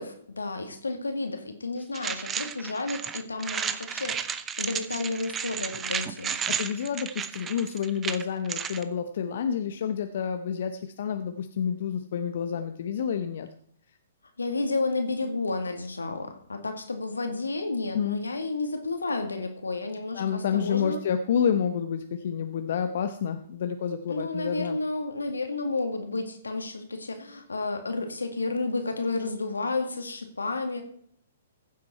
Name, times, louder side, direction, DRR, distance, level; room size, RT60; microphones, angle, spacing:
voice 1, 0.0-4.2 4.6-6.4 14.4-21.0 24.1-30.8, left 3 dB, 85° left, 6 dB, 2.1 m, -31 dB
sound 1, 1.9-8.8, right 7 dB, 20° right, 0.7 m, -33 dB
voice 2, 6.5-13.5 17.9-18.2 20.1-24.8, left 7 dB, 60° left, 8 dB, 0.8 m, -29 dB
15.0 x 7.6 x 4.3 m, 0.65 s
figure-of-eight pair, 120°, 0 cm